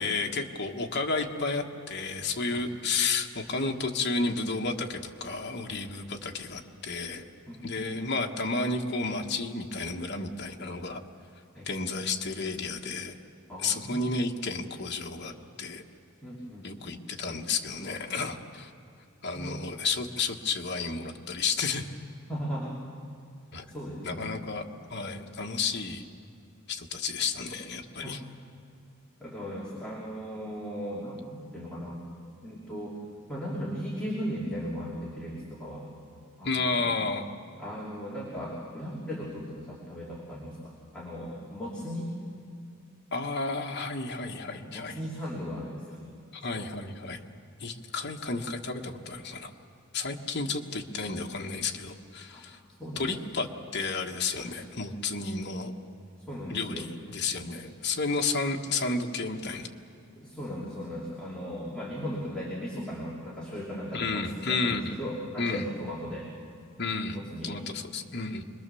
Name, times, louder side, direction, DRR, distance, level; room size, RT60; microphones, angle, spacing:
voice 1, 0.0-7.2 7.6-11.0 11.6-13.1 13.6-15.8 16.6-18.7 19.2-21.9 23.5-23.6 24.0-24.6 24.9-26.1 26.7-28.2 36.4-37.3 43.1-45.0 46.3-47.2 47.6-49.5 49.9-52.6 52.9-55.7 56.5-59.7 63.9-64.9 65.4-65.7 66.8-67.2 67.4-68.4, left 3 dB, 55° left, 2 dB, 1.4 m, -32 dB
voice 2, 7.5-7.9 11.5-11.7 13.5-14.0 16.2-16.9 19.3-19.5 22.3-22.8 23.5-24.3 28.0-28.2 29.2-32.0 32.4-33.0 33.3-35.9 36.4-36.9 37.6-42.1 44.6-46.1 46.5-46.6 52.3-52.4 52.8-53.2 56.3-56.9 60.2-66.3 67.1-67.6, equal, 5° left, -6 dB, 3.0 m, -37 dB
26.0 x 21.5 x 7.0 m, 2.3 s
head